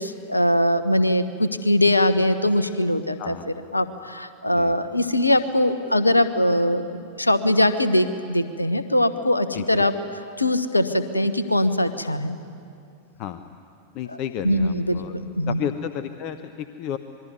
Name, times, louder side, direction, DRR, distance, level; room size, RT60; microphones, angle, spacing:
voice 1, 0.0-9.9 10.4-12.4 14.1-14.2 14.4-15.6, left 1 dB, 85° left, 12 dB, 1.2 m, -22 dB
voice 2, 13.9-15.1 15.5-17.0, left 9 dB, 40° left, 10 dB, 0.9 m, -32 dB
27.0 x 22.0 x 9.8 m, 2.5 s
figure-of-eight pair, 90°, 0 cm